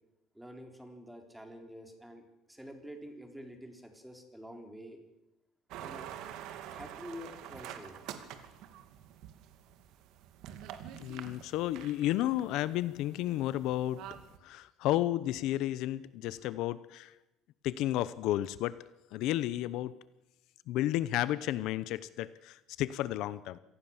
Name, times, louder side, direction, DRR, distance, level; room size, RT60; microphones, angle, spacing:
voice 1, 0.3-2.2 2.5-5.0 5.8-6.1 6.7-8.0, equal, 5° right, 5 dB, 3.8 m, -48 dB
sound 1, 5.7-14.4, right 10 dB, 70° right, 2.5 m, -47 dB
voice 2, 11.0-14.0 14.4-17.1 17.6-18.7 19.1-19.9 20.7-23.6, left 14 dB, 70° left, 17 dB, 0.8 m, -32 dB
26.5 x 18.5 x 7.3 m, 0.89 s
cardioid pair, 145°, 0 cm